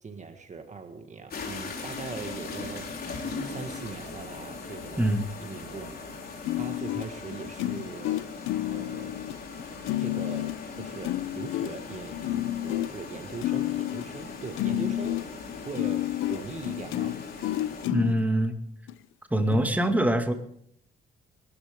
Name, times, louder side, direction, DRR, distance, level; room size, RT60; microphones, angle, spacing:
voice 1, 0.0-8.2 8.7-9.2 10.0-10.5 10.8-15.3 15.7-17.2, right 5 dB, 35° right, 6 dB, 1.8 m, -41 dB
sound 1, 1.3-17.9, left 4 dB, 50° left, 4.0 m, -40 dB
sound 2, 6.4-18.2 18.9-19.0 19.5-19.7, left 14 dB, 90° left, 0.6 m, -30 dB
voice 2, 17.9-18.6 19.3-20.3, right 1 dB, 10° right, 5 dB, 2.1 m, -24 dB
23.0 x 13.0 x 3.8 m, 0.68 s
cardioid pair, 90°, 20 cm